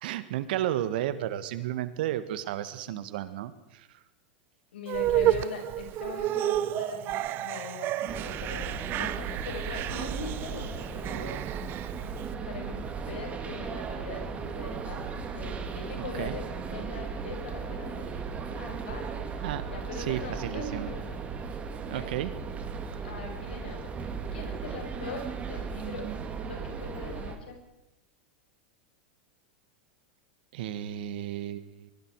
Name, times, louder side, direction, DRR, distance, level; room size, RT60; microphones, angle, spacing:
voice 1, 0.0-3.9 16.2-16.4 19.4-19.6 20.1-20.9 21.9-22.3 30.5-31.9, right 12 dB, 70° right, 12 dB, 1.8 m, -33 dB
voice 2, 2.6-3.0 4.7-11.5 12.2-18.2 18.5-19.2 19.7-21.2 21.9-22.1 23.0-23.9 24.3-26.1 26.4-27.6, left 4 dB, 85° left, 3 dB, 6.1 m, -41 dB
sound 1, 4.9-12.3, right 13 dB, 40° right, 0.9 m, -31 dB
sound 2, 8.1-27.4, right 5 dB, 25° right, 2.9 m, -36 dB
24.0 x 22.5 x 4.9 m, 0.94 s
hypercardioid pair, 115°, 5 cm